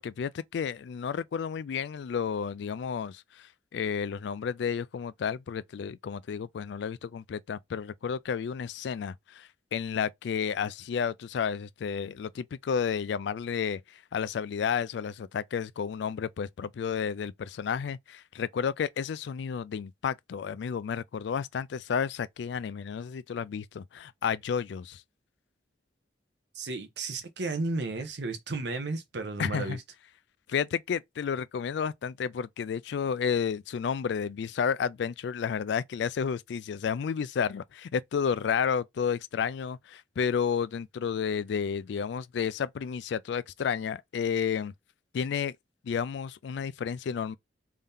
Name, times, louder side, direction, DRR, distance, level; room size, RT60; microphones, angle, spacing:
voice 1, 0.0-25.0 29.4-29.8 30.5-44.7 45.1-45.6 45.8-47.4, left 7 dB, 70° left, 0.3 m, -31 dB
voice 2, 26.5-29.8, right 3 dB, 65° right, 0.8 m, -33 dB
3.4 x 2.7 x 3.6 m
head